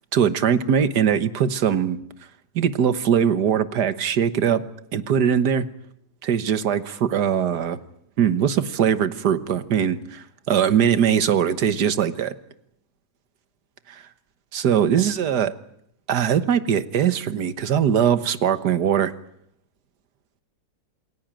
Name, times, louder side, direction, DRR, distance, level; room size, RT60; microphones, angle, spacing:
voice 1, 0.1-2.0 2.6-4.6 4.9-5.7 6.2-7.8 8.2-12.3 14.5-15.5 16.1-19.1, right 8 dB, 80° right, 13 dB, 1.8 m, -21 dB
28.0 x 20.5 x 9.0 m, 0.76 s
omnidirectional pair, 1.7 m